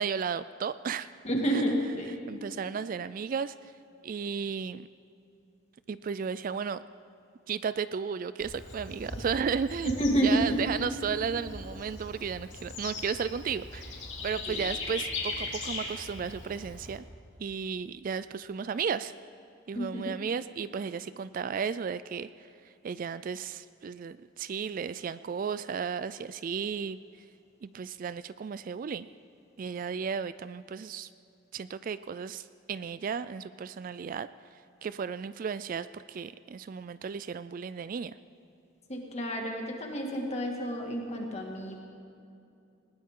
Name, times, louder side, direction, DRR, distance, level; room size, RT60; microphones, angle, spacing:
voice 1, 0.0-1.1 1.5-1.6 2.3-3.7 4.0-4.9 5.9-6.8 7.5-17.0 17.4-19.1 19.7-22.3 22.8-27.0 27.6-29.1 29.6-31.1 31.5-34.3 34.8-38.1, right 6 dB, 40° right, 14 dB, 0.3 m, -34 dB
voice 2, 1.2-2.1 10.0-10.6 14.5-14.6 19.7-20.1 38.9-41.8, right 1 dB, 30° left, 1 dB, 2.1 m, -29 dB
Bird / Insect, 8.4-17.0, left 3 dB, 60° left, 3.0 m, -39 dB
20.5 x 19.0 x 3.8 m, 2.7 s
head